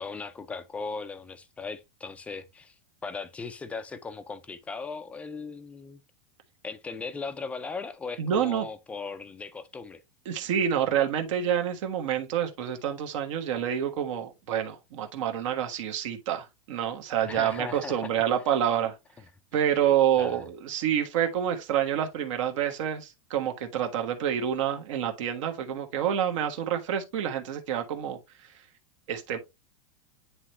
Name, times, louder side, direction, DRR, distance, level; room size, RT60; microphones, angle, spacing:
voice 1, 0.0-2.8 3.0-6.0 6.6-10.0 17.2-18.1 20.2-20.4, left 4 dB, 5° left, 0.4 m, -38 dB
voice 2, 8.2-8.6 10.2-19.0 19.5-28.2 29.1-29.4, right 9 dB, 60° right, 1.4 m, -28 dB
9.7 x 3.3 x 3.0 m
supercardioid pair, 170°, 18 cm